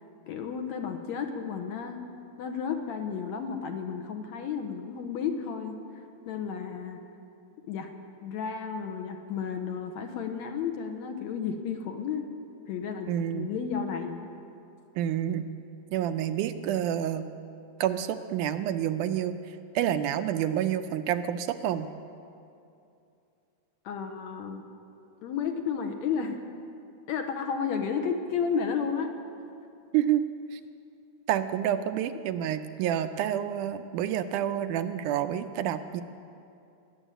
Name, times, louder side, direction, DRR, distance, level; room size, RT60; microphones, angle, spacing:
voice 1, 0.3-2.0 2.4-7.0 7.7-7.9 8.2-12.2 12.7-14.2 23.9-24.6 25.2-26.4 27.1-29.1, left 6 dB, 70° left, 5 dB, 2.0 m, -32 dB
voice 2, 13.1-13.5 15.0-15.5 15.9-17.2 17.8-19.3 19.8-21.9 29.9-30.2 30.5-30.6 31.3-36.0, right 10 dB, 80° right, 9 dB, 2.0 m, -28 dB
20.0 x 7.2 x 9.0 m, 2.6 s
omnidirectional pair, 3.7 m